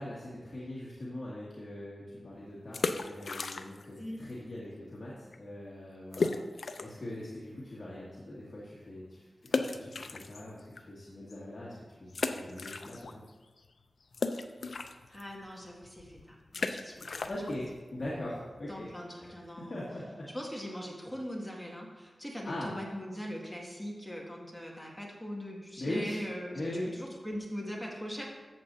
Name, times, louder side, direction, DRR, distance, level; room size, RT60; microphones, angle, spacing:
voice 1, 0.0-9.3 9.6-13.2 17.3-17.7 17.9-18.9 19.2-19.3 19.7-20.2 22.4-22.7 25.8-26.2 26.5-26.9, left 1 dB, 45° left, -7 dB, 2.2 m, -41 dB
sound 1, 2.6-4.0 4.2-4.3 4.9-5.1 5.3-5.4 6.1-7.1 7.5-7.6 9.5-10.8 11.3-11.4 12.1-13.3 13.6-19.1, left 4 dB, 75° left, 0.5 m, -36 dB
voice 2, 15.1-17.2 18.7-19.8 20.3-26.6 26.9-28.3, equal, ahead, -3 dB, 2.1 m, -41 dB
13.5 x 7.6 x 2.8 m, 1.3 s
wide cardioid pair, 85°, 0 cm